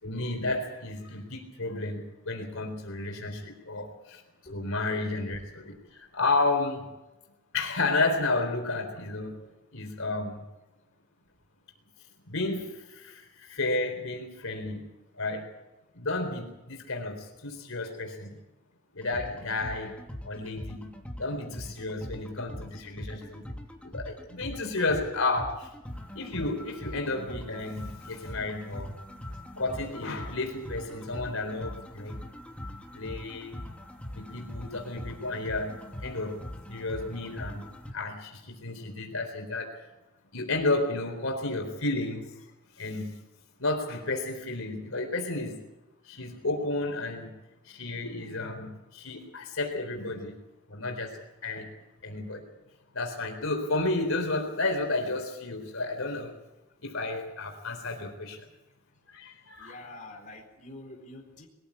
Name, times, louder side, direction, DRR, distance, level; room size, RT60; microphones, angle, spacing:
voice 1, 0.0-4.2 4.5-6.9 7.5-10.4 12.3-14.9 15.2-15.5 15.9-18.4 18.9-20.0 20.2-20.9 21.2-23.5 23.9-25.7 26.1-29.0 29.6-32.2 32.9-33.6 34.1-36.4 36.7-39.9 40.3-42.4 42.8-43.1 43.6-45.6 46.1-47.4 47.6-50.4 50.7-51.7 52.0-52.4 52.9-56.3 56.8-58.5 59.1-59.8, left 2 dB, 70° left, 3 dB, 4.0 m, -32 dB
sound 1, 19.0-37.9, left 1 dB, 5° left, 2.7 m, -42 dB
voice 2, 59.6-61.5, left 2 dB, 40° left, 0 dB, 4.3 m, -47 dB
22.0 x 15.0 x 8.5 m, 1.0 s
head